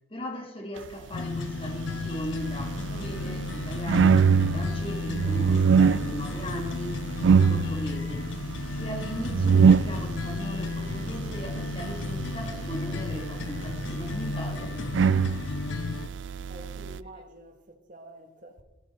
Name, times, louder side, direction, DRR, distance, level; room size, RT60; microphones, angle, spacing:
voice 1, 0.1-8.3 8.7-14.9, equal, 30° left, 1.9 m, -38 dB
sound 1, 1.1-16.1, left 4 dB, 85° left, 0.6 m, -34 dB
sound 2, 1.6-17.0, right 6 dB, 80° right, 0.4 m, -26 dB
voice 2, 16.5-18.6, right 1 dB, 45° right, 1.5 m, -48 dB
13.5 x 13.0 x 4.2 m
head